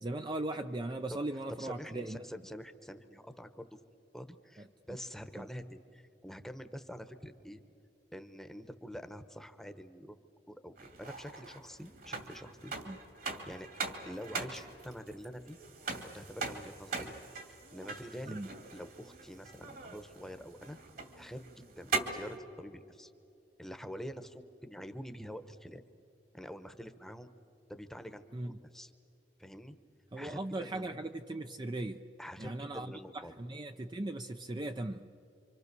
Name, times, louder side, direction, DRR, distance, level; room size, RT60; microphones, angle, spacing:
voice 1, 0.0-2.2 4.6-4.7 5.4-5.5 12.9-13.0 18.3-18.5 28.3-28.6 30.1-32.0 32.4-35.1, right 2 dB, 25° right, 6 dB, 0.6 m, -38 dB
voice 2, 1.6-7.6 8.1-10.2 10.5-12.7 13.4-13.7 14.1-15.6 16.1-17.1 17.5-18.4 18.7-20.8 21.2-23.1 23.6-25.8 26.3-27.3 27.7-28.9 29.4-29.8 30.1-31.0 32.2-33.3, equal, ahead, 9 dB, 1.0 m, -46 dB
sound 1, 10.8-22.4, right 4 dB, 55° right, 2.4 m, -41 dB
28.0 x 25.5 x 6.8 m, 2.7 s
head